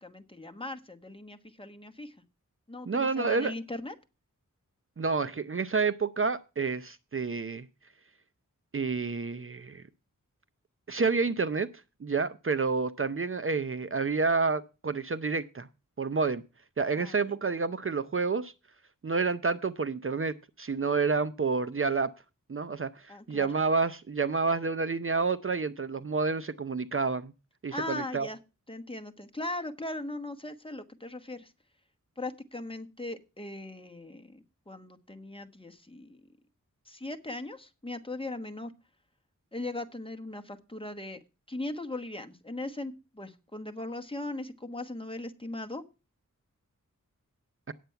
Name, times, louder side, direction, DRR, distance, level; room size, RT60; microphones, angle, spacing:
voice 1, 0.0-2.1 2.7-3.9 17.0-17.2 23.1-23.5 27.7-28.4 28.7-31.5 32.2-36.2 36.9-38.7 39.5-41.2 41.5-45.8, left 2 dB, 15° left, 1.2 m, -39 dB
voice 2, 2.9-3.5 5.0-7.7 8.7-9.8 10.9-11.7 12.0-15.7 16.0-16.4 16.8-18.5 19.0-22.1 22.5-27.3 27.6-28.3, right 4 dB, 40° right, 0.6 m, -29 dB
9.3 x 8.0 x 5.7 m
wide cardioid pair, 55°, 32 cm